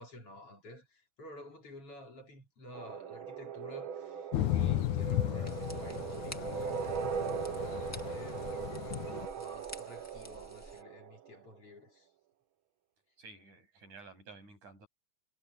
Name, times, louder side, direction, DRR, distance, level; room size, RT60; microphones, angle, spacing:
voice 1, 0.0-7.6 8.0-8.7 9.4-12.1, left 1 dB, 50° left, 5.0 m, -51 dB
sound 1, 2.7-11.4, right 7 dB, 60° right, 1.4 m, -40 dB
Thunder / Rain, 4.3-9.3, left 13 dB, 80° left, 2.5 m, -35 dB
sound 2, 5.5-10.8, left 1 dB, 5° left, 1.7 m, -51 dB
voice 2, 13.2-14.9, right 4 dB, 90° right, 9.3 m, -52 dB
omnidirectional pair, 3.4 m